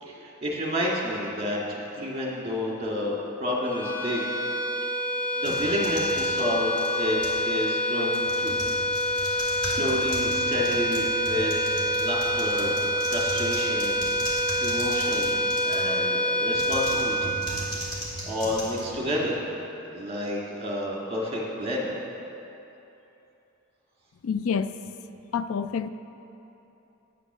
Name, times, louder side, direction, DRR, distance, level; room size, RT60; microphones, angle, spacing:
voice 1, 0.0-4.2 5.4-7.2 7.4-8.6 9.1-12.8 13.0-14.0 14.6-17.3 17.9-19.4 19.8-21.9, equal, 30° right, -4 dB, 2.2 m, -30 dB
sound 1, 3.6-18.2, equal, 5° left, 0.9 m, -27 dB
sound 2, 5.4-7.5 8.1-16.0 16.5-19.4, equal, 20° left, 2.3 m, -37 dB
voice 2, 24.2-24.7 25.3-25.9, left 6 dB, 75° left, 12 dB, 0.4 m, -27 dB
10.0 x 9.0 x 6.2 m, 3.0 s
head